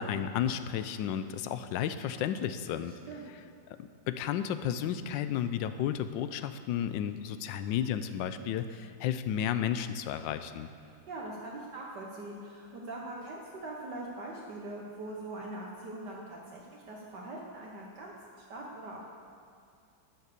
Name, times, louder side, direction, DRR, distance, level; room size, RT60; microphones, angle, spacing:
voice 1, 0.0-2.9 4.1-10.7, left 9 dB, 75° left, 11 dB, 1.2 m, -32 dB
voice 2, 2.9-3.4 11.1-18.1 18.5-19.0, right 2 dB, 60° right, -3 dB, 1.6 m, -42 dB
11.5 x 7.4 x 6.7 m, 2.4 s
omnidirectional pair, 2.1 m